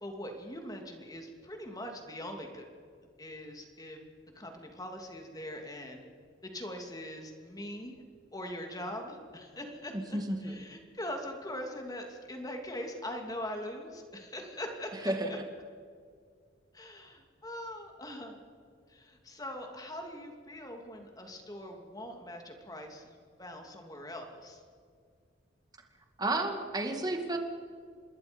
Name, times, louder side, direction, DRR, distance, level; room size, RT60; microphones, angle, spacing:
voice 1, 0.0-2.7 3.2-4.1 4.3-6.0 6.4-8.0 8.3-15.4 16.7-18.4 18.9-24.6, left 1 dB, 20° left, 3 dB, 2.8 m, -42 dB
voice 2, 9.9-10.6 15.0-15.4 26.2-27.4, right 2 dB, 20° right, 3 dB, 2.2 m, -32 dB
27.0 x 21.0 x 5.4 m, 2.2 s
head